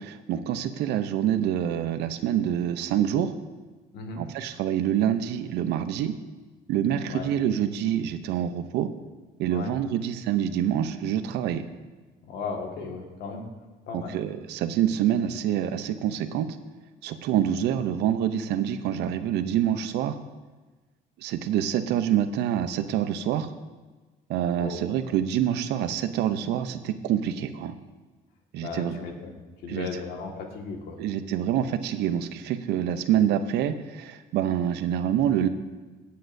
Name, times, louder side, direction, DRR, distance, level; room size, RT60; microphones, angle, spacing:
voice 1, 0.0-3.3 4.2-6.1 6.7-8.9 9.4-11.6 13.9-16.5 17.0-20.2 21.2-23.5 24.3-27.7 28.5-29.0 29.7-29.9 31.0-35.5, right 10 dB, 85° right, 10 dB, 0.7 m, -26 dB
voice 2, 12.3-13.5 13.9-14.1 24.6-25.0 28.6-29.4 29.6-31.0, left 4 dB, 70° left, 2 dB, 1.8 m, -36 dB
17.0 x 8.6 x 2.7 m, 1.3 s
cardioid pair, 110°, 17 cm